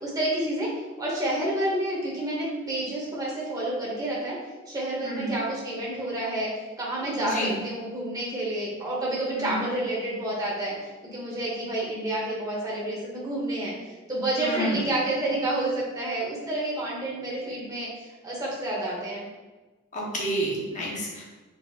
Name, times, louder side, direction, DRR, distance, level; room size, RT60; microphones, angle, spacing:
voice 1, 0.0-0.7 1.0-4.4 4.7-6.5 6.8-10.7 11.1-19.2, right 1 dB, 20° right, -5 dB, 1.1 m, -29 dB
voice 2, 7.2-7.6 9.4-9.6 14.4-14.8 19.9-21.2, equal, 35° left, -3 dB, 1.0 m, -30 dB
4.2 x 4.0 x 2.4 m, 1.2 s
head